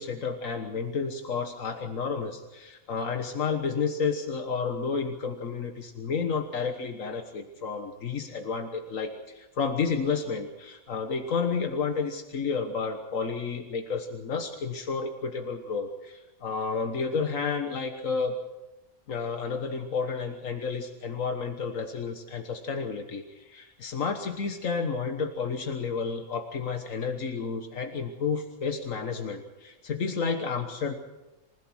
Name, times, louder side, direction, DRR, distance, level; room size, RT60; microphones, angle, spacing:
voice 1, 0.0-18.3 19.1-30.9, left 5 dB, 85° left, 5 dB, 1.8 m, -31 dB
27.5 x 16.0 x 6.3 m, 1.0 s
omnidirectional pair, 1.3 m